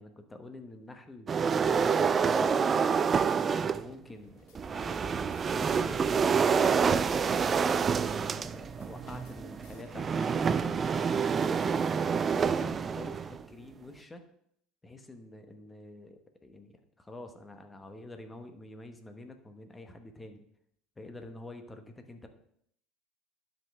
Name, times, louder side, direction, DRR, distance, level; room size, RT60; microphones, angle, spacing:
voice 1, 0.0-3.0 3.5-7.5 8.1-11.8 12.4-14.2 14.8-20.4 21.0-22.3, left 2 dB, 15° left, 7 dB, 1.1 m, -47 dB
sound 1, 1.3-3.9 4.5-13.4, right 6 dB, 30° right, 0.3 m, -27 dB
sound 2, 4.2-13.2, left 4 dB, 75° left, 1.6 m, -57 dB
11.5 x 5.3 x 3.6 m, 0.68 s
supercardioid pair, 110°, 0 cm